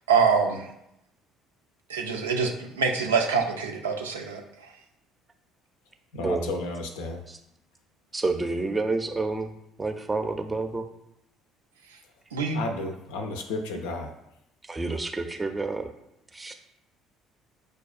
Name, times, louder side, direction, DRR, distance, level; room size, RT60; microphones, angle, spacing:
voice 1, 0.1-0.7 1.9-4.4 12.3-12.6, right 5 dB, 85° right, 2 dB, 0.4 m, -25 dB
voice 2, 6.1-7.2 12.5-14.1, left 2 dB, 75° left, 5 dB, 0.5 m, -32 dB
voice 3, 8.1-9.5 9.8-10.8 14.7-15.9 16.3-16.5, right 3 dB, 20° right, 6 dB, 0.5 m, -29 dB
6.2 x 2.3 x 2.4 m, 0.81 s
hypercardioid pair, 55°, 0 cm